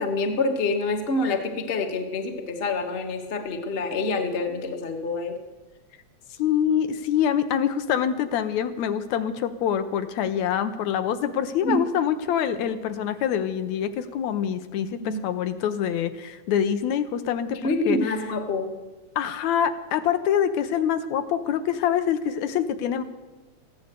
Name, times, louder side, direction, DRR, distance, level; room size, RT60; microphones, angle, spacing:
voice 1, 0.0-5.4 11.6-11.8 15.0-15.2 17.6-18.7, left 2 dB, 50° left, 4 dB, 0.7 m, -26 dB
voice 2, 6.4-17.6 17.9-18.0 19.2-23.0, left 9 dB, 75° left, 10 dB, 2.0 m, -25 dB
14.5 x 9.5 x 8.0 m, 1.2 s
omnidirectional pair, 3.3 m